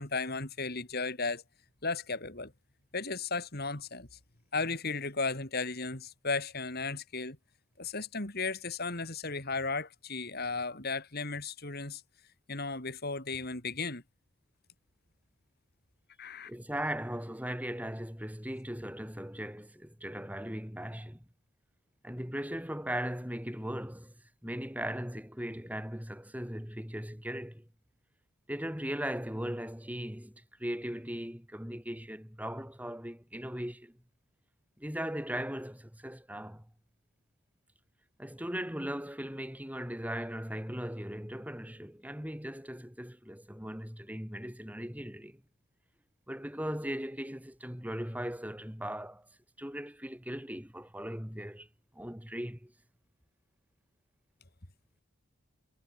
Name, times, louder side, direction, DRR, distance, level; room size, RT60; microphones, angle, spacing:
voice 1, 0.0-1.4 1.8-2.5 2.9-4.1 4.5-7.4 7.8-12.0 12.5-14.0 16.2-16.5, left 3 dB, 45° left, 3.5 m, -35 dB
voice 2, 16.5-21.2 22.0-24.1 24.4-27.7 28.5-34.0 34.8-36.7 38.2-45.4 46.3-49.3 49.6-51.7 51.9-52.7, equal, 5° right, 4.1 m, -38 dB
head